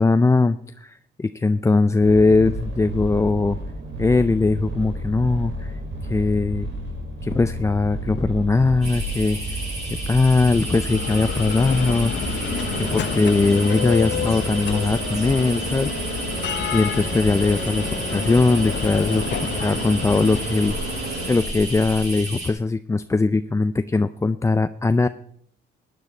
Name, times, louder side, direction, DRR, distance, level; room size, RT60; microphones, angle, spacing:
voice 1, 0.0-3.6 4.0-5.7 6.0-6.7 7.2-9.6 10.1-12.4 12.7-20.8 21.3-25.1, left 3 dB, 15° left, 11 dB, 0.4 m, -20 dB
sound 1, 2.0-21.4, right 2 dB, 65° right, 4.8 m, -32 dB
sound 2, 8.8-22.5, right 1 dB, 35° right, 7.1 m, -32 dB
Bell, 10.4-22.1, left 10 dB, 65° left, 0.8 m, -30 dB
16.0 x 9.8 x 4.4 m, 0.67 s
cardioid pair, 90°, 20 cm